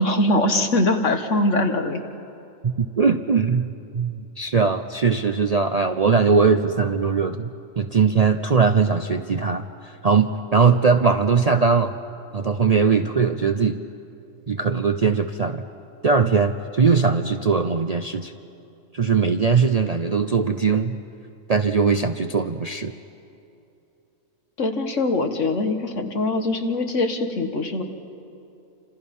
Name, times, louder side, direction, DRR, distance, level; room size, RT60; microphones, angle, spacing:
voice 1, 0.0-2.0 24.6-27.8, left 2 dB, 65° left, 5 dB, 2.0 m, -22 dB
voice 2, 2.6-11.9 12.3-13.8 14.5-15.6 16.0-18.3 18.9-21.0 21.5-22.9, right 5 dB, 45° right, 8 dB, 0.5 m, -20 dB
29.0 x 26.5 x 5.5 m, 2.7 s
omnidirectional pair, 1.4 m